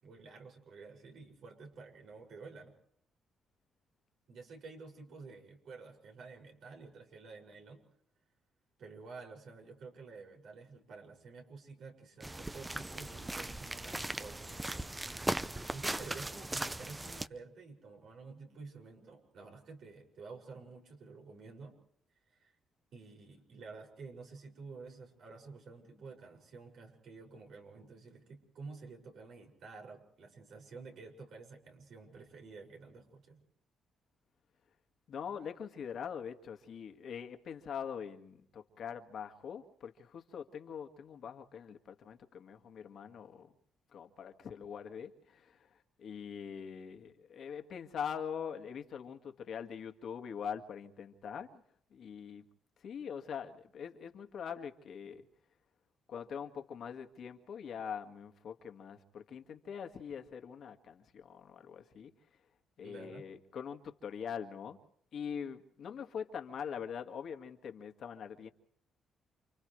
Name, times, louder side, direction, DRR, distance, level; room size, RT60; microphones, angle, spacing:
voice 1, 0.0-2.7 4.3-7.8 8.8-15.4 15.7-21.7 22.3-22.5 22.9-33.4 62.8-63.2, right 4 dB, 70° right, 2 dB, 6.3 m, -51 dB
sound 1, 12.2-17.3, right 2 dB, 15° right, 0.7 m, -38 dB
voice 2, 35.1-43.5 43.9-51.6 51.9-52.4 52.8-55.3 56.1-62.1 62.8-64.8 65.1-68.5, left 7 dB, 65° left, 6 dB, 2.0 m, -43 dB
29.5 x 27.0 x 3.3 m, 0.67 s
cardioid pair, 90°, 0 cm